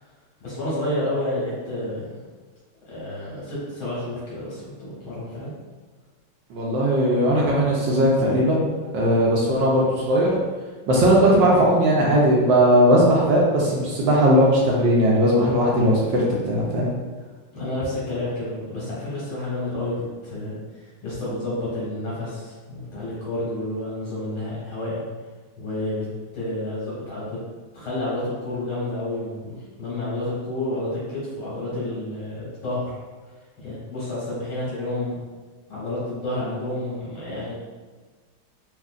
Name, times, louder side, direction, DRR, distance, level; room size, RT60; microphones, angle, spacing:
voice 1, 0.4-2.2 2.9-5.5 17.5-25.0 25.6-26.1 26.3-27.4 27.7-33.0 33.6-35.2 35.7-37.5, left 1 dB, 75° left, -8 dB, 2.3 m, -30 dB
voice 2, 6.5-10.4 10.9-16.9, equal, 70° right, -3 dB, 1.2 m, -18 dB
4.5 x 2.5 x 2.4 m, 1.4 s
omnidirectional pair, 2.3 m